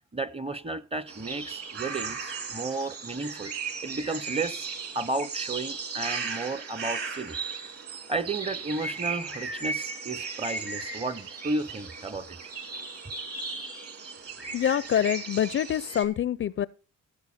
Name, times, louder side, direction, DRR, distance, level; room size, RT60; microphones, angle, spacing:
voice 1, 0.1-3.5 3.8-4.7 4.9-7.7 8.1-12.4, right 2 dB, 20° right, 0.7 m, -33 dB
sound 1, 1.1-16.1, right 4 dB, 50° right, 2.3 m, -36 dB
voice 2, 14.5-16.7, left 9 dB, 45° left, 0.4 m, -26 dB
16.5 x 7.0 x 4.2 m
cardioid pair, 90°, 30 cm